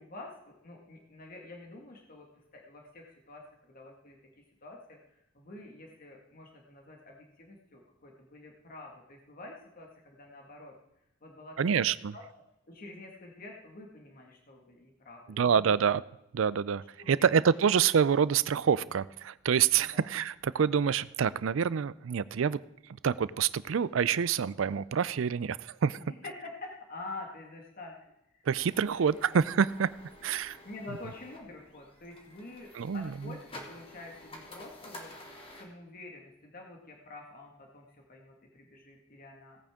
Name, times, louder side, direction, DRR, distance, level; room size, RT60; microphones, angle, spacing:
voice 1, 0.0-2.3 2.5-10.7 11.2-11.9 12.1-12.2 12.7-15.8 17.0-17.4 19.9-20.1 26.1-29.4 30.6-35.1 35.6-39.6, left 2 dB, 45° left, 0 dB, 1.8 m, -47 dB
voice 2, 11.6-12.1 15.4-16.0 16.3-22.6 23.0-26.0 28.5-29.9 30.2-30.6 32.7-33.3, right 7 dB, 80° right, 18 dB, 0.4 m, -27 dB
sound 1, 28.6-35.6, left 1 dB, 30° left, 2.0 m, -50 dB
17.5 x 8.8 x 3.7 m, 0.84 s
head